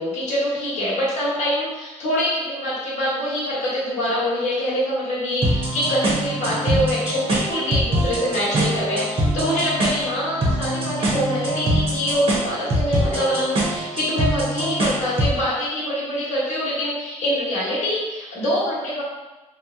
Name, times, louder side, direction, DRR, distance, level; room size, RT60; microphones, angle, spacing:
voice 1, 0.0-19.0, equal, 65° left, -9 dB, 1.1 m, -24 dB
sound 1, 5.4-15.4, right 1 dB, 45° right, 0.9 m, -24 dB
2.8 x 2.2 x 3.6 m, 1.1 s
cardioid pair, 125°, 13 cm